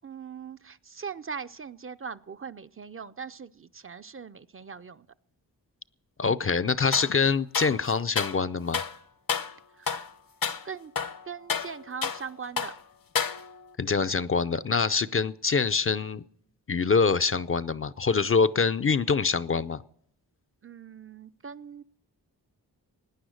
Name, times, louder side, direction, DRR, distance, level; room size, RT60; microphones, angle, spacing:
voice 1, 0.0-5.1 9.8-10.1 10.6-10.9 11.3-12.7 20.6-21.8, right 6 dB, 35° right, 12 dB, 0.5 m, -40 dB
voice 2, 6.2-8.8 13.8-16.2 16.7-19.8, left 5 dB, 35° left, 14 dB, 0.5 m, -25 dB
sound 1, 6.9-7.2 7.5-8.4 8.7-9.0 9.3-9.6 9.9-10.1 10.4-10.6 11.0-12.3 12.6-12.8 13.2-13.7, left 6 dB, 60° left, 0.9 m, -31 dB
18.0 x 9.8 x 6.4 m, 0.72 s
wide cardioid pair, 75°, 38 cm